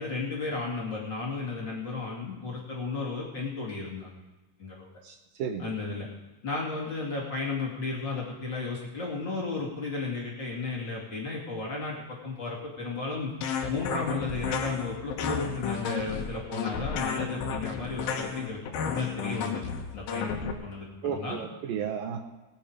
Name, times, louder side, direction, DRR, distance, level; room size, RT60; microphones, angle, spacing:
voice 1, 0.0-4.1 4.6-4.9 5.6-6.1 6.4-13.3 13.7-19.6 19.9-20.3 20.6-21.4, left 3 dB, 30° left, -4 dB, 2.9 m, -34 dB
voice 2, 5.0-5.7 21.0-22.2, right 7 dB, 75° right, 5 dB, 2.4 m, -33 dB
sound 1, 13.4-20.5, left 6 dB, 75° left, 3.0 m, -32 dB
20.0 x 9.0 x 5.0 m, 1.1 s
omnidirectional pair, 4.4 m